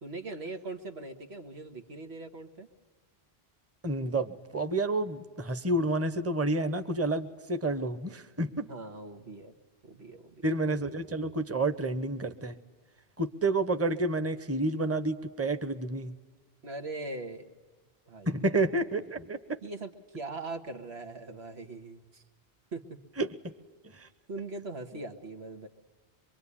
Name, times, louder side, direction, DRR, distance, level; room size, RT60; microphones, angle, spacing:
voice 1, 0.0-2.7 8.7-9.5 9.8-10.5 16.6-17.6 18.1-18.3 19.6-22.2 22.7-23.0 24.3-25.7, right 2 dB, 85° right, 5 dB, 2.1 m, -41 dB
voice 2, 3.8-8.7 10.4-12.5 13.2-16.1 18.3-19.6 23.2-23.5 23.8-24.1, right 2 dB, 15° right, 10 dB, 1.0 m, -30 dB
24.5 x 24.0 x 10.0 m, 1.4 s
omnidirectional pair, 1.1 m